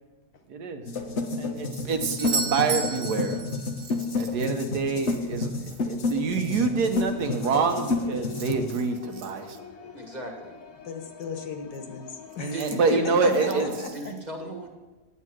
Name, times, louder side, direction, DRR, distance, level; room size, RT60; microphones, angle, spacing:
voice 1, 0.5-0.8 1.3-3.4 4.1-9.7 12.4-13.7, right 4 dB, 75° right, 6 dB, 1.5 m, -26 dB
sound 1, 0.9-8.7, left 3 dB, 50° left, 1.1 m, -30 dB
Doorbell, 2.2-4.0 8.1-8.2, right 4 dB, 50° right, 1.1 m, -31 dB
sound 2, 6.2-13.8, left 5 dB, 65° left, 1.4 m, -46 dB
voice 2, 9.9-10.5 12.5-14.7, right 2 dB, 25° right, 2 dB, 1.5 m, -36 dB
voice 3, 10.8-13.0 13.2-14.1 14.4-14.5, left 4 dB, 85° left, 5 dB, 1.9 m, -37 dB
9.6 x 8.4 x 6.1 m, 1.2 s
omnidirectional pair, 1.8 m